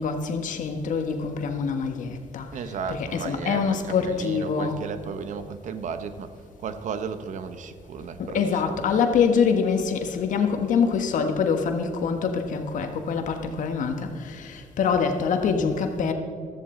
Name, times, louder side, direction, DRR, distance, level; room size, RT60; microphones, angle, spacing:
voice 1, 0.0-2.5 2.9-4.9 8.2-16.1, left 6 dB, 70° left, 6 dB, 1.4 m, -25 dB
voice 2, 2.5-8.6, right 6 dB, 65° right, 10 dB, 0.9 m, -34 dB
14.5 x 14.0 x 3.9 m, 2.2 s
cardioid pair, 115°, 14 cm